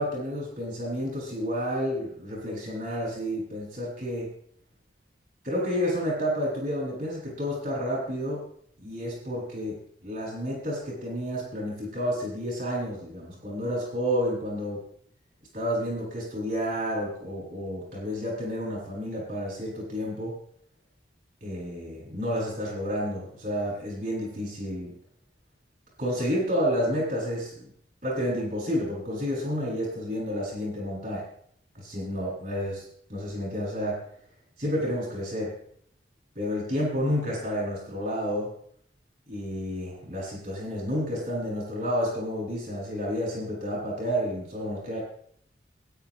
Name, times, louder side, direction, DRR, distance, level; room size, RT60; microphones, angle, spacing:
voice 1, 0.0-4.3 5.4-8.4 8.8-14.8 15.5-20.4 21.4-24.9 26.0-27.7 28.0-31.2 31.7-32.8 33.1-34.0 34.6-35.5 36.3-38.5 39.3-45.0, equal, 45° right, -5 dB, 6.8 m, -30 dB
23.5 x 11.0 x 3.2 m, 0.65 s
head